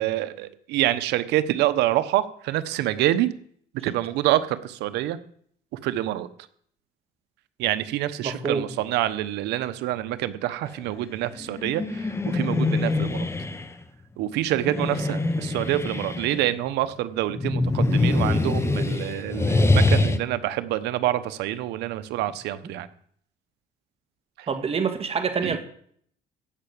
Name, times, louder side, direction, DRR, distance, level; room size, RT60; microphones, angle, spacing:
voice 1, 0.0-3.3 3.8-5.2 5.8-6.3 7.6-12.1 12.3-13.3 14.2-22.9 24.4-24.5 25.4-25.6, right 14 dB, 90° right, 13 dB, 1.1 m, -26 dB
voice 2, 8.2-8.6 24.5-25.6, right 6 dB, 35° right, 7 dB, 1.9 m, -26 dB
sound 1, 11.3-13.7 14.5-16.5 17.3-20.2, left 2 dB, 15° left, 1.0 m, -24 dB
14.5 x 5.9 x 8.7 m, 0.62 s
cardioid pair, 110°, 17 cm